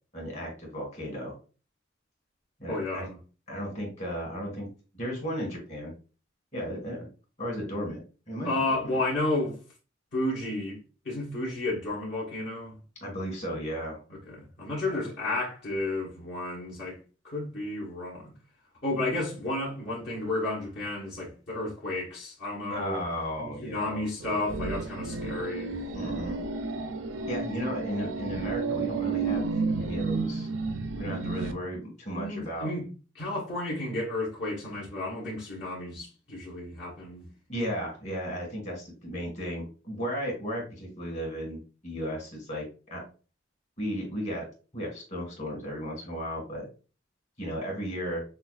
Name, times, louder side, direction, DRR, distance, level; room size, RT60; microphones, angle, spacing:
voice 1, 0.1-1.4 2.6-3.1 3.5-4.7 4.9-5.9 6.5-7.1 7.4-8.0 8.3-9.0 13.0-14.0 14.8-15.0 22.7-24.1 25.9-26.4 27.3-29.4 29.7-30.5 30.9-32.7 37.5-43.0 43.8-44.4 44.7-46.7 47.4-48.2, equal, 35° left, 1.6 m, -35 dB
voice 2, 2.7-3.2 8.4-9.6 10.1-10.8 11.0-12.7 14.1-17.0 17.2-18.3 18.8-23.0 23.4-25.8 32.1-32.9 33.1-37.3, left 2 dB, 60° left, 1.2 m, -32 dB
sound 1, 24.2-31.5, right 4 dB, 80° right, 0.5 m, -31 dB
5.6 x 2.2 x 2.4 m
head